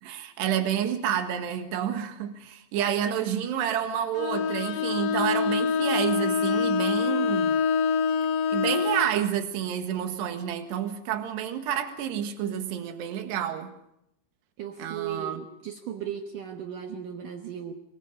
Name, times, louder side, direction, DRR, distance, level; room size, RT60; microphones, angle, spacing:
voice 1, 0.0-7.6 8.5-13.7 14.8-15.4, right 9 dB, 80° right, 7 dB, 3.8 m, -29 dB
Bowed string instrument, 4.2-9.1, left 6 dB, 85° left, 4.1 m, -25 dB
voice 2, 14.6-17.7, right 8 dB, 65° right, 4 dB, 2.4 m, -36 dB
25.0 x 24.0 x 5.5 m, 0.78 s
omnidirectional pair, 4.9 m